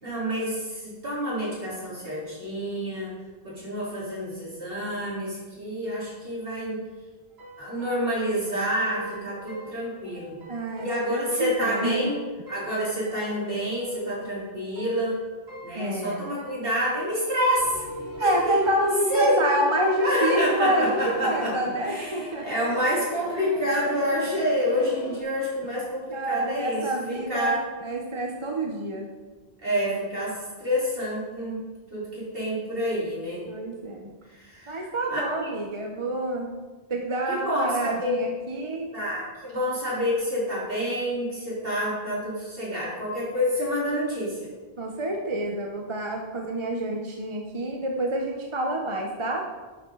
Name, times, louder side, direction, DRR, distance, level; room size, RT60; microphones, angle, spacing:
voice 1, 0.0-3.1 3.4-6.8 7.6-10.4 10.8-12.2 12.5-15.2 15.6-17.9 18.2-18.6 19.1-19.4 20.0-21.6 21.9-27.6 29.6-33.4 34.3-35.5 37.3-38.1 38.9-44.5, equal, 65° right, -7 dB, 4.2 m, -28 dB
sound 1, 7.3-17.5 17.8-21.6, equal, 85° right, 3.0 m, -43 dB
voice 2, 10.5-12.0 15.7-16.3 18.2-22.5 26.1-29.1 33.4-34.1 34.7-36.5 36.9-38.9 44.8-49.5, right 1 dB, 30° right, 1 dB, 1.0 m, -28 dB
sound 2, 17.6-25.2, left 3 dB, 75° left, 2.1 m, -37 dB
11.5 x 9.0 x 3.9 m, 1.3 s
omnidirectional pair, 1.1 m